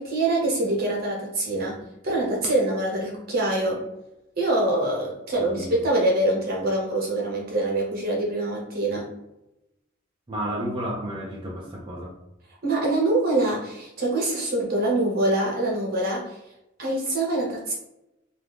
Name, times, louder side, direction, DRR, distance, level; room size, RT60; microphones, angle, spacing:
voice 1, 0.0-3.8 4.4-9.1 12.6-16.4 16.8-17.7, right 2 dB, 50° right, -2 dB, 1.0 m, -24 dB
voice 2, 5.4-5.7 10.3-12.1, right 1 dB, 25° right, -4 dB, 0.5 m, -32 dB
2.6 x 2.4 x 3.4 m, 0.91 s
head